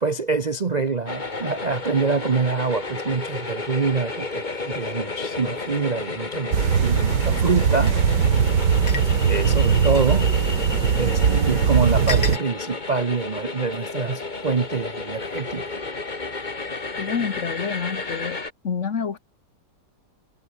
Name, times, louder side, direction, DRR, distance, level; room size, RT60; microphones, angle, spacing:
voice 1, 0.0-7.9 8.9-10.3 10.9-15.6, right 4 dB, 30° right, 0.8 m, -25 dB
sound 1, 1.1-18.5, left 3 dB, 25° left, 2.0 m, -32 dB
sound 2, 6.5-12.4, right 7 dB, 70° right, 2.4 m, -20 dB
sound 3, 7.9-8.0 8.9-9.1 9.9-10.1 11.2-11.3 12.1-12.4, left 4 dB, 85° left, 4.2 m, -30 dB
voice 2, 17.0-18.4 18.6-19.2, left 6 dB, 45° left, 1.5 m, -27 dB
omnidirectional pair, 1.9 m